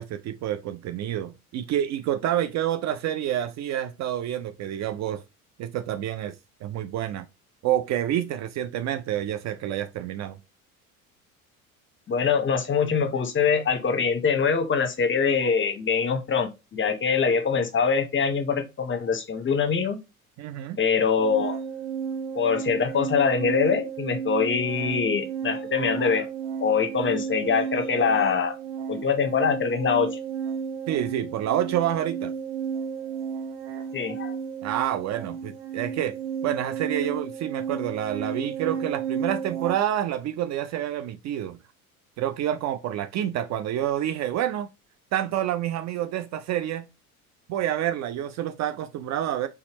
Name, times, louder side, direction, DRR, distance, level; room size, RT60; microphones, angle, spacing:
voice 1, 0.0-5.2 5.6-6.3 6.6-7.3 7.6-10.4 20.4-20.8 30.9-32.3 34.6-36.2 36.4-41.6 42.2-44.7 45.1-46.9 47.5-49.5, right 11 dB, 40° right, 0.5 m, -28 dB
voice 2, 12.1-20.0 20.8-21.6 22.3-26.3 26.6-28.5 28.9-30.2 33.9-34.4, left 6 dB, 25° left, 0.9 m, -24 dB
sound 1, 21.2-39.7, right 7 dB, 55° right, 1.3 m, -33 dB
4.2 x 3.7 x 2.9 m
hypercardioid pair, 70°, 43 cm